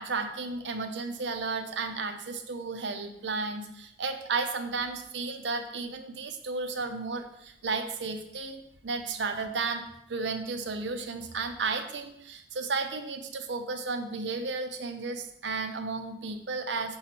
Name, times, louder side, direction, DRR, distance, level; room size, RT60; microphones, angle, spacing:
voice 1, 0.0-9.8 10.1-17.0, right 4 dB, 80° right, 7 dB, 0.7 m, -33 dB
7.0 x 3.2 x 5.8 m, 0.78 s
head